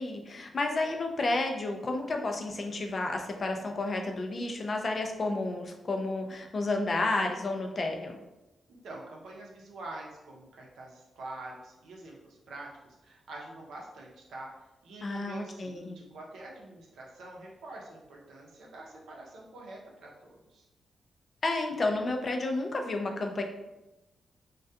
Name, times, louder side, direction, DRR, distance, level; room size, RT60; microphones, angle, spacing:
voice 1, 0.0-8.2 15.0-16.0 21.4-23.4, left 2 dB, 40° left, 3 dB, 0.4 m, -31 dB
voice 2, 8.7-14.5 14.8-20.7, right 2 dB, 90° right, -2 dB, 0.6 m, -46 dB
2.2 x 2.2 x 2.7 m, 0.99 s
cardioid pair, 110°, 0 cm